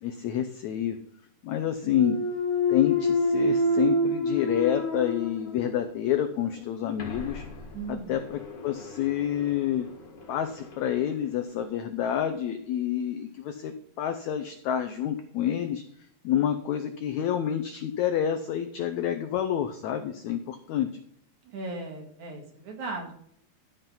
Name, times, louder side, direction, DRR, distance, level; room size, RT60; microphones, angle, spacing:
voice 1, 0.0-1.0 1.4-2.2 2.7-7.4 7.9-9.9 10.3-15.8 16.2-20.9, left 10 dB, 90° left, 8 dB, 1.6 m, -28 dB
Thump thud, 1.8-5.8 6.3-11.0, left 1 dB, 45° left, 2.1 m, -29 dB
voice 2, 7.7-8.2 21.4-23.1, right 3 dB, 55° right, 2 dB, 3.1 m, -37 dB
13.0 x 5.3 x 5.6 m, 0.67 s
omnidirectional pair, 4.2 m